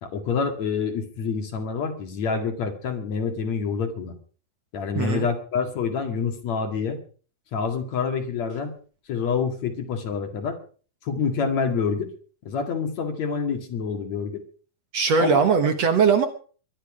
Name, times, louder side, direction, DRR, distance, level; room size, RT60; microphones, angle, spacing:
voice 1, 0.0-4.1 4.7-7.0 7.5-8.7 9.1-10.6 11.0-12.1 12.5-14.4 15.2-15.4, left 5 dB, 55° left, 5 dB, 3.1 m, -27 dB
voice 2, 4.9-5.3 14.9-16.3, right 6 dB, 55° right, 7 dB, 2.2 m, -20 dB
21.5 x 12.0 x 5.0 m, 0.42 s
omnidirectional pair, 4.0 m